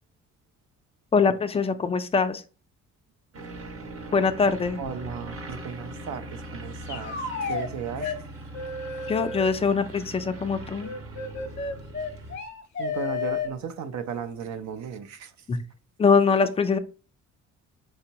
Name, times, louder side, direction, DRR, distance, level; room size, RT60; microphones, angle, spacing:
voice 1, 1.1-2.4 4.1-4.8 9.1-10.9 15.5-15.6 16.0-16.8, left 5 dB, 20° left, 0.3 m, -23 dB
sound 1, 3.3-12.4, right 1 dB, 50° right, 0.8 m, -40 dB
voice 2, 4.8-8.1 12.8-15.3, right 7 dB, 70° right, 0.5 m, -35 dB
sound 2, 6.9-7.7 8.0-8.2 8.5-9.5 10.8-13.5, left 4 dB, 40° left, 0.7 m, -32 dB
4.4 x 2.0 x 2.8 m
cardioid pair, 90°, 30 cm